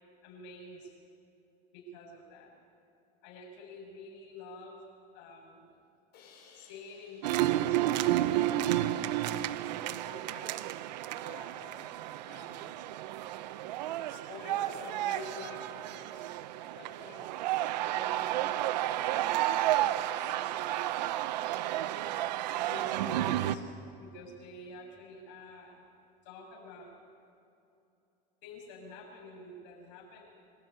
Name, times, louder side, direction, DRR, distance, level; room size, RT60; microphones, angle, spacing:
voice 1, 0.2-0.9 1.7-2.5 3.2-4.8 5.1-5.7 6.5-7.8 8.2-10.6 11.2-11.9 12.3-13.0 14.1-16.3 16.7-17.3 17.8-21.0 22.5-23.7 24.0-25.8 26.2-27.0 28.4-30.2, left 1 dB, 75° left, 1 dB, 7.2 m, -49 dB
Crash cymbal, 6.1-9.2, left 5 dB, 50° left, 6.2 m, -62 dB
sound 1, 7.2-23.6, right 13 dB, 90° right, 0.9 m, -31 dB
25.5 x 14.0 x 9.7 m, 2.7 s
supercardioid pair, 105°, 21 cm